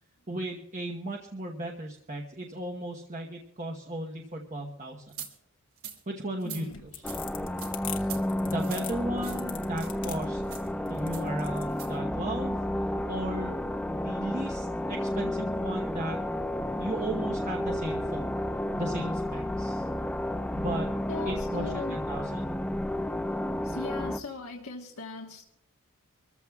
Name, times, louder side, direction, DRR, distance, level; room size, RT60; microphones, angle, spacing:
voice 1, 0.3-5.0 6.1-6.7 6.9-7.2 8.4-10.4 10.9-12.6 13.1-13.6 13.9-16.2 16.7-18.3 18.8-19.9 20.6-20.9 21.2-22.6, right 1 dB, 35° right, 1 dB, 1.1 m, -35 dB
sound 1, 5.1-5.3 5.8-6.0 6.4-6.6 7.1-7.2 7.6-7.7 8.0-8.2 8.6-8.8 9.2-9.4 9.8-9.9 10.4-10.7 11.1-11.3 11.7-11.9, right 9 dB, 80° right, 2.4 m, -42 dB
voice 2, 6.4-6.8 21.1-22.0 23.6-25.4, left 3 dB, 80° left, 0 dB, 1.4 m, -40 dB
sound 2, 6.6-11.7, left 10 dB, 60° left, 1.3 m, -41 dB
sound 3, 7.0-24.2, left 1 dB, 5° left, 0.4 m, -31 dB
25.5 x 14.5 x 2.4 m, 0.81 s
head